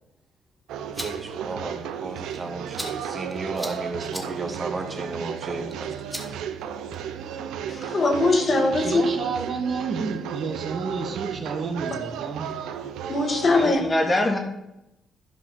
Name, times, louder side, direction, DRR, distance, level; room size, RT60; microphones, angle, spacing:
sound 1, 0.7-7.2, equal, 5° left, 1.6 m, -42 dB
sound 2, 0.7-13.7, right 8 dB, 90° right, 0.7 m, -34 dB
voice 1, 1.0-5.9, right 3 dB, 30° right, 1.7 m, -33 dB
voice 2, 7.7-9.0 11.9-12.0 13.1-13.8, left 2 dB, 40° left, 1.7 m, -21 dB
voice 3, 8.5-12.5, right 4 dB, 50° right, 1.3 m, -30 dB
voice 4, 13.4-14.4, left 1 dB, 25° left, 1.8 m, -24 dB
12.0 x 5.1 x 5.5 m
cardioid pair, 90°, 0 cm